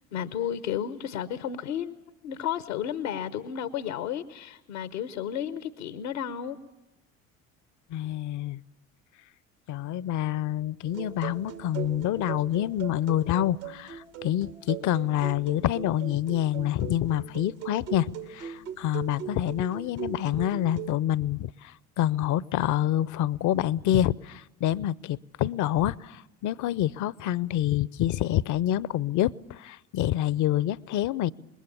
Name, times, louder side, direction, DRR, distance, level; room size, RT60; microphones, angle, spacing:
voice 1, 0.1-2.0 2.2-6.6, left 9 dB, 70° left, 1.0 m, -32 dB
voice 2, 7.9-8.6 9.7-31.3, left 12 dB, 45° left, 0.7 m, -27 dB
sound 1, 10.8-20.9, right 10 dB, 75° right, 1.9 m, -40 dB
26.5 x 21.5 x 7.0 m
figure-of-eight pair, 60°, 40 cm